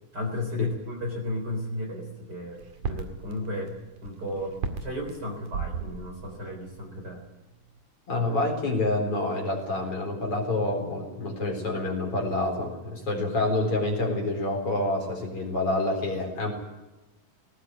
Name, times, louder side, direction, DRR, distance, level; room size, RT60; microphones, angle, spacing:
voice 1, 0.1-3.7 4.0-7.2, left 1 dB, 30° right, 1 dB, 4.1 m, -34 dB
sound 1, 2.6-7.3 7.8-7.9, right 5 dB, 60° right, 3.4 m, -37 dB
voice 2, 8.1-16.5, left 2 dB, 40° left, 1 dB, 4.8 m, -27 dB
19.5 x 18.5 x 9.3 m, 1.1 s
omnidirectional pair, 4.1 m